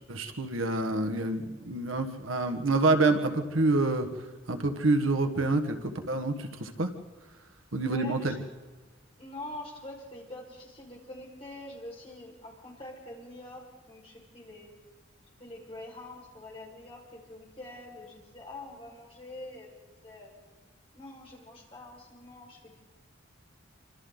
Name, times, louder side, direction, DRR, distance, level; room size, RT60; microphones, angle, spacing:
voice 1, 0.1-4.1 4.5-6.9 7.7-8.3, right 2 dB, 85° right, 7 dB, 1.7 m, -27 dB
voice 2, 7.8-8.4 9.2-14.7 15.4-20.3 20.9-22.8, left 1 dB, 30° left, -3 dB, 5.4 m, -45 dB
27.5 x 25.5 x 4.0 m, 1.2 s
head